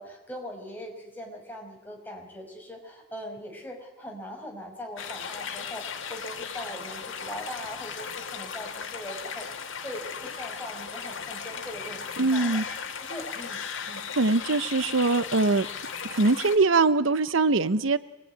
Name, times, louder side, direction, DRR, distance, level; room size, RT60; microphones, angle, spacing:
voice 1, 0.0-12.6 13.0-13.6 13.9-14.0, equal, 10° left, 0 dB, 5.8 m, -41 dB
sound 1, 5.0-16.6, left 6 dB, 75° left, 1.9 m, -36 dB
voice 2, 12.2-12.6 14.2-15.7 16.1-18.0, right 3 dB, 80° right, 14 dB, 0.8 m, -22 dB
27.0 x 20.5 x 9.5 m, 1.0 s
head